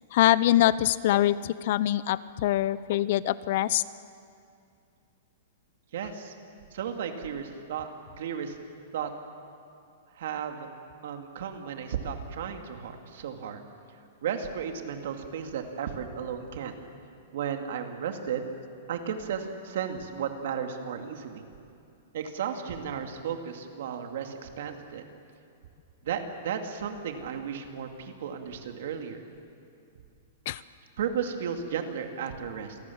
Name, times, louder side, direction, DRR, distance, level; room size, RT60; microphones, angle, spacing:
voice 1, 0.1-3.8 30.5-30.6, left 13 dB, 45° left, 18 dB, 0.6 m, -24 dB
voice 2, 5.9-6.3 6.7-7.9 8.2-8.6 8.9-9.1 10.2-10.7 11.0-13.6 14.2-16.7 17.3-18.5 18.9-21.5 22.1-25.0 26.0-29.2 31.0-32.8, right 7 dB, 60° right, 4 dB, 2.6 m, -34 dB
28.0 x 18.5 x 7.3 m, 2.5 s
hypercardioid pair, 165°, 0 cm